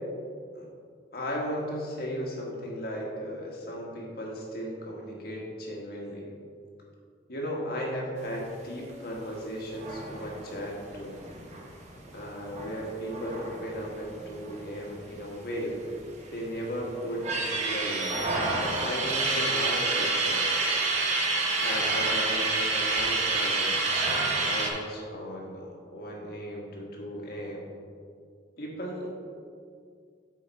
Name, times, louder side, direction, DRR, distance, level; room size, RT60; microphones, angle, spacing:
voice 1, 1.1-6.3 7.3-11.2 12.1-15.8 16.3-18.2 18.8-20.6 21.6-23.8 24.5-27.7 28.6-29.1, equal, 60° left, -2 dB, 1.4 m, -36 dB
sound 1, 9.7-14.9 15.2-15.3 15.5-16.5 16.9-24.7, right 3 dB, 40° right, 1.0 m, -28 dB
7.7 x 5.0 x 4.1 m, 2.2 s
head